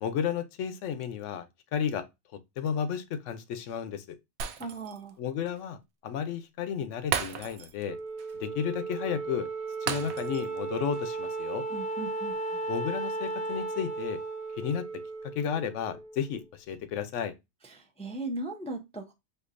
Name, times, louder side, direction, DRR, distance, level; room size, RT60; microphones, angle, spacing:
voice 1, 0.0-1.5 1.7-2.1 2.6-4.2 5.2-8.0 8.4-9.5 9.8-11.6 12.7-14.2 14.6-14.8 15.3-17.3, left 8 dB, 85° left, 0.9 m, -33 dB
Shatter, 4.4-5.1 5.5-5.6 7.1-7.9 8.2-8.3 9.9-10.6 10.9-11.1, right 7 dB, 70° right, 0.8 m, -34 dB
voice 2, 4.6-5.1 11.7-12.6 17.7-19.1, right 2 dB, 10° left, 0.3 m, -38 dB
Wind instrument woodwind instrument, 7.8-16.4, right 3 dB, 30° right, 1.3 m, -35 dB
4.4 x 2.6 x 2.5 m
omnidirectional pair, 1.2 m